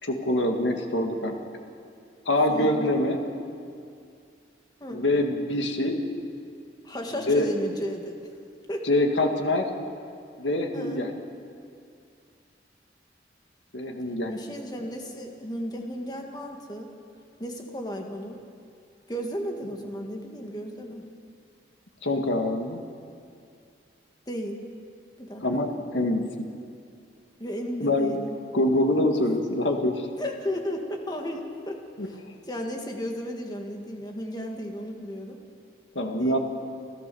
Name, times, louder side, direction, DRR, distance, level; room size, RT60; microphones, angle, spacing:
voice 1, 0.0-1.3 2.3-3.2 4.9-6.0 7.3-7.5 8.8-9.7 10.4-11.1 13.7-14.3 22.0-22.8 25.4-26.2 27.8-28.1 28.5-30.1 32.0-32.1 36.0-36.4, left 1 dB, 85° left, 4 dB, 1.9 m, -25 dB
voice 2, 2.5-3.0 4.8-5.0 6.8-8.2 8.7-8.9 10.7-11.1 14.3-16.9 17.4-18.4 19.1-21.0 24.3-24.6 25.2-25.7 27.4-28.4 30.2-32.2 32.5-35.4 36.1-36.4, equal, 20° left, 2 dB, 1.9 m, -34 dB
29.0 x 13.5 x 7.0 m, 2.4 s
head